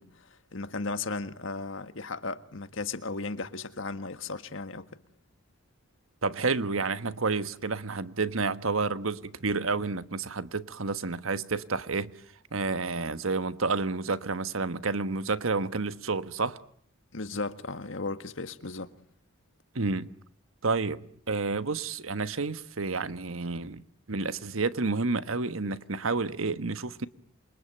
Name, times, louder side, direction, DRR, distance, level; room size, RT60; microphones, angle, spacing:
voice 1, 0.0-4.9 17.1-18.9, left 3 dB, 70° left, 1.6 m, -36 dB
voice 2, 6.2-12.1 12.5-16.6 19.7-20.1 20.6-23.8 24.1-27.1, right 4 dB, 80° right, 1.3 m, -30 dB
27.5 x 23.5 x 9.1 m
head